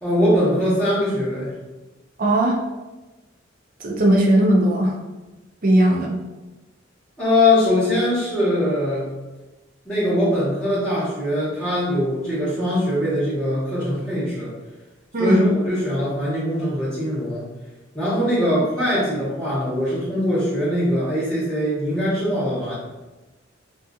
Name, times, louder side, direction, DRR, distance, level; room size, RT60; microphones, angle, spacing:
voice 1, 0.0-1.5 7.2-9.1 9.8-14.5 15.2-17.5 17.9-22.7, left 1 dB, 5° left, -15 dB, 1.0 m, -22 dB
voice 2, 2.2-2.6 3.8-4.9 5.6-6.1 15.1-15.5, right 1 dB, 45° right, -1 dB, 0.5 m, -17 dB
2.8 x 2.4 x 2.3 m, 1.1 s
head